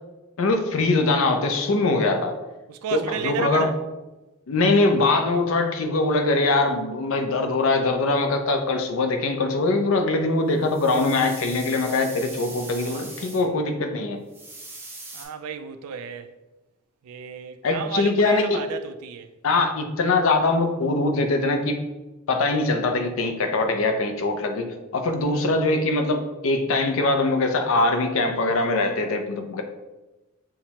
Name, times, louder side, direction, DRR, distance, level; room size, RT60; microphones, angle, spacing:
voice 1, 0.4-2.4 2.9-3.7 4.5-14.2 17.6-18.6 19.4-21.8 22.3-29.6, left 2 dB, 70° left, 0.4 m, -22 dB
voice 2, 2.7-3.8 12.6-13.6 15.1-16.3 17.0-19.3 25.3-25.5, right 7 dB, 90° right, 0.3 m, -34 dB
sound 1, 10.5-13.4 14.3-15.3, right 2 dB, 10° right, 0.4 m, -40 dB
5.7 x 2.0 x 2.8 m
head